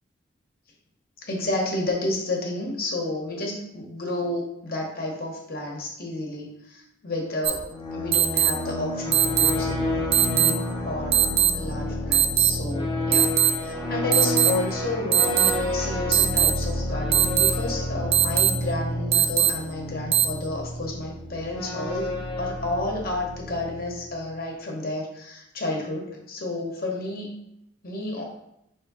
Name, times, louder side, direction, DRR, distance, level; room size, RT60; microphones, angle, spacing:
voice 1, 1.2-9.9 10.2-11.3 11.5-13.3 13.6-22.1 22.4-27.3 27.8-28.2, left 2 dB, 50° left, 0 dB, 1.0 m, -31 dB
sound 1, 7.4-7.5 8.1-8.5 9.1-9.5 10.1-10.5 11.1-11.5 12.1-12.5 13.1-13.5 14.1-14.5 15.1-15.5 16.1-16.5 17.1-17.5 18.1-18.5 19.1-19.5 20.1-20.2, right 11 dB, 30° right, 0.3 m, -19 dB
sound 2, 7.5-24.2, left 1 dB, 25° left, 0.7 m, -30 dB
3.6 x 3.1 x 4.7 m, 0.81 s
head